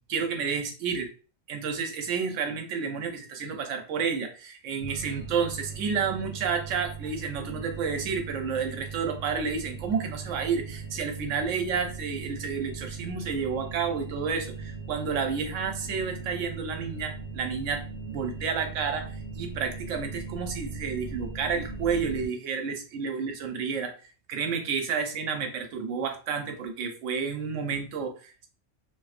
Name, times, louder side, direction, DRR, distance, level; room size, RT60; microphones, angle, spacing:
voice 1, 0.1-1.1 1.5-23.9 24.3-28.5, right 6 dB, 90° right, 5 dB, 1.0 m, -30 dB
sound 1, 4.8-22.3, right 5 dB, 90° left, 1.2 m, -39 dB
2.5 x 2.0 x 2.4 m, 0.36 s
omnidirectional pair, 1.3 m